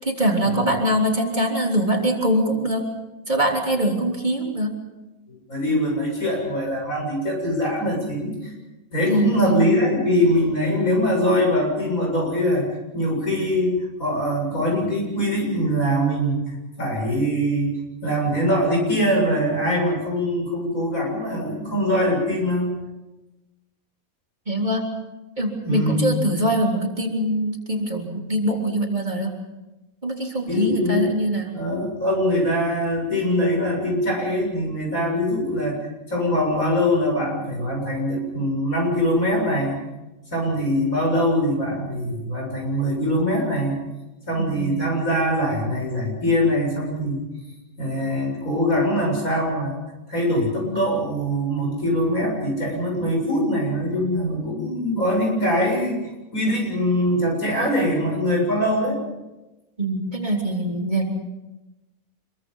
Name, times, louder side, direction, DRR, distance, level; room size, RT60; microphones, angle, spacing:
voice 1, 0.0-2.9 3.3-4.7 9.0-9.6 24.5-24.8 25.4-29.3 30.0-31.5 44.4-44.7 59.8-61.1, right 1 dB, 30° right, 0 dB, 3.6 m, -23 dB
voice 2, 5.3-8.5 8.9-16.4 16.8-22.7 25.6-26.2 30.5-31.1 31.5-35.8 36.1-39.8 40.3-43.8 44.3-47.2 47.8-49.8 50.1-59.0, equal, 75° left, -1 dB, 8.0 m, -23 dB
26.5 x 23.0 x 5.6 m, 1.0 s
omnidirectional pair, 1.4 m